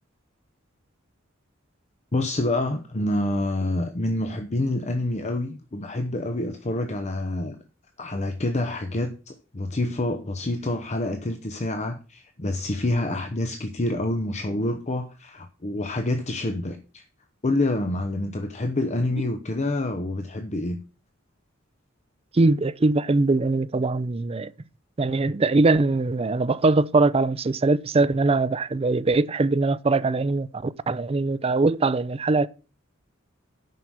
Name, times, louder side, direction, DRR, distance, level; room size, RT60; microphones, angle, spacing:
voice 1, 2.1-7.6 8.0-17.0 17.4-20.8, left 2 dB, 35° left, 0.9 m, -27 dB
voice 2, 22.3-24.5 25.0-32.5, right 3 dB, 30° right, 0.5 m, -22 dB
9.3 x 5.8 x 6.3 m
head